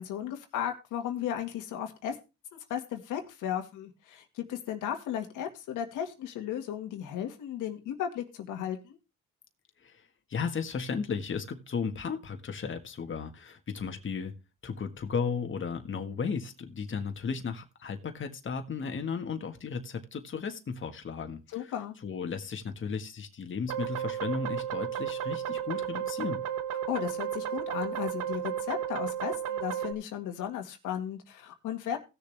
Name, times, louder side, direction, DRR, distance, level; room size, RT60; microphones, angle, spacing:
voice 1, 0.0-2.2 2.7-9.0 21.5-22.0 26.9-32.0, left 9 dB, 90° left, 1.9 m, -35 dB
voice 2, 9.8-14.3 14.6-26.4, left 5 dB, 40° left, 1.6 m, -35 dB
sound 1, 23.7-29.9, right 10 dB, 90° right, 1.2 m, -33 dB
17.0 x 6.8 x 3.4 m
cardioid pair, 90°, 30 cm